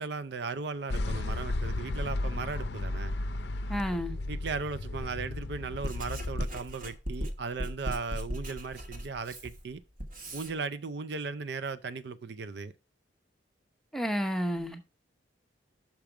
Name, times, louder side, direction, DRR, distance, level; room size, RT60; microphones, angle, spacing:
voice 1, 0.0-3.2 4.3-9.8 10.3-12.7, right 4 dB, 65° right, 0.5 m, -37 dB
sound 1, 0.9-6.5, left 2 dB, 60° left, 0.5 m, -34 dB
voice 2, 3.7-4.2 13.9-14.9, equal, ahead, 0.7 m, -31 dB
Writing, 5.5-10.5, equal, 45° right, 1.3 m, -38 dB
6.0 x 5.0 x 5.9 m
head